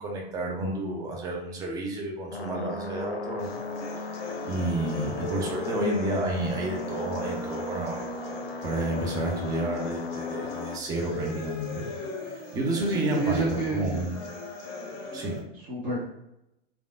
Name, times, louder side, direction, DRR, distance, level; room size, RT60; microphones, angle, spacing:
voice 1, 0.0-3.6 4.1-8.0 8.6-11.9 12.2-14.1 15.1-15.4, right 1 dB, 10° right, -1 dB, 0.4 m, -30 dB
sound 1, 2.3-10.8, left 3 dB, 80° left, 0.5 m, -36 dB
sound 2, 3.4-15.4, left 3 dB, 30° left, 0.7 m, -39 dB
voice 2, 12.9-14.0 15.7-16.0, right 3 dB, 35° right, -9 dB, 1.0 m, -28 dB
3.3 x 2.4 x 2.3 m, 0.86 s
figure-of-eight pair, 95°, 31 cm